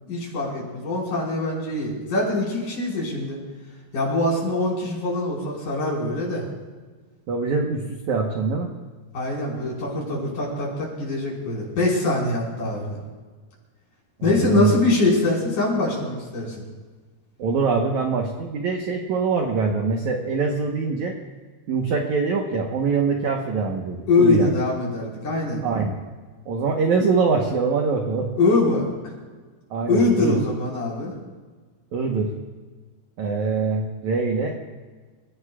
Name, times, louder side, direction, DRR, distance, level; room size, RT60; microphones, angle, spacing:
voice 1, 0.1-3.4 3.9-6.4 9.1-12.9 14.2-16.5 24.1-25.6 28.4-28.8 29.9-31.1, left 2 dB, 45° left, -4 dB, 6.5 m, -23 dB
voice 2, 7.3-8.7 14.2-14.8 17.4-21.2 21.7-24.5 25.6-26.0 26.5-28.3 29.7-30.4 31.9-32.3 33.2-34.6, right 4 dB, 65° right, 1 dB, 1.9 m, -23 dB
29.5 x 16.5 x 2.5 m, 1.4 s
omnidirectional pair, 5.1 m